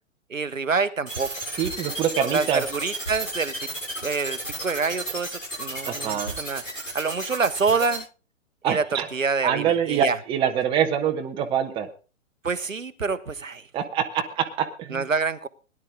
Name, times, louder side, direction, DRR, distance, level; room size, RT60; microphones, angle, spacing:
voice 1, 0.3-1.3 2.3-3.7 4.0-6.6 6.9-8.0 8.6-10.2 12.4-13.7 14.9-15.5, right 4 dB, 85° right, 1.0 m, -27 dB
sound 1, 1.1-8.0, right 1 dB, 90° left, 7.4 m, -32 dB
voice 2, 1.6-2.6 5.9-6.3 8.6-9.1 9.4-11.9 13.7-15.0, right 8 dB, 15° right, 0.9 m, -25 dB
18.0 x 11.0 x 3.7 m
figure-of-eight pair, 120°, 38 cm